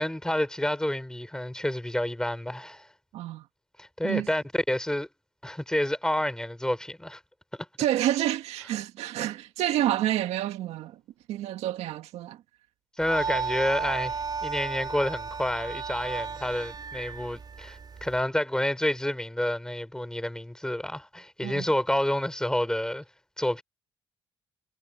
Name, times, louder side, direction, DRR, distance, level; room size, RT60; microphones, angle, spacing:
voice 1, 0.0-2.9 3.8-5.1 5.4-7.2 13.0-14.1 14.4-23.0 23.4-23.6, left 1 dB, 5° left, 4.2 m, -29 dB
voice 2, 3.1-3.4 4.0-4.3 7.8-11.0 11.3-12.4 21.4-21.7, right 13 dB, 85° right, 1.9 m, -28 dB
sound 1, 13.0-18.2, right 5 dB, 40° right, 3.2 m, -34 dB
cardioid pair, 75°, 11 cm